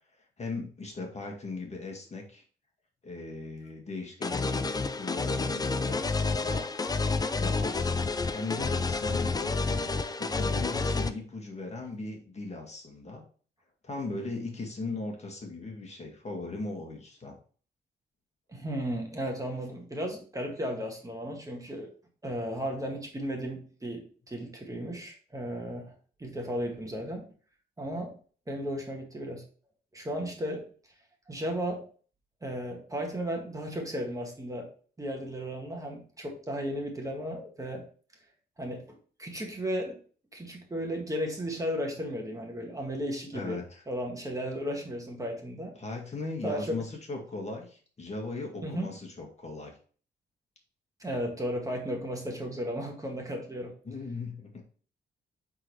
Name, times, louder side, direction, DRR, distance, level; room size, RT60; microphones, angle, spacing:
voice 1, 0.4-2.4 3.0-4.7 4.9-6.7 7.3-8.0 8.3-9.9 10.2-13.2 13.8-17.4 43.3-43.8 45.8-49.7 53.9-54.6, left 3 dB, 35° left, 1 dB, 2.0 m, -38 dB
sound 1, 4.2-11.1, left 3 dB, 20° left, 0.5 m, -29 dB
voice 2, 18.5-21.9 22.2-27.3 27.8-28.2 28.5-29.4 29.9-30.9 31.3-31.9 32.4-34.7 35.0-37.8 38.6-40.0 40.3-43.6 43.9-45.7 46.4-46.8 48.6-48.9 51.0-53.7, equal, 20° right, 1 dB, 1.7 m, -35 dB
8.6 x 4.0 x 3.2 m, 0.41 s
cardioid pair, 90°, 18 cm